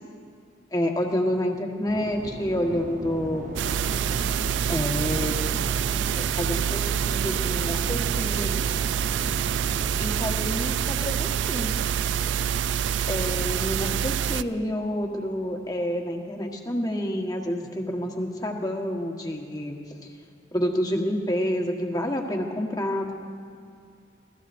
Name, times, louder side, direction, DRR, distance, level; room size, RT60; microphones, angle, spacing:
voice 1, 0.7-3.6 4.7-5.4 6.2-8.8 10.0-11.7 13.1-20.0 20.5-23.1, equal, 20° left, 2 dB, 1.3 m, -28 dB
sound 1, 1.9-10.3, right 1 dB, 45° right, 0.8 m, -37 dB
sound 2, 3.6-14.4, right 8 dB, 75° right, 0.3 m, -26 dB
26.0 x 17.5 x 2.6 m, 2.3 s
head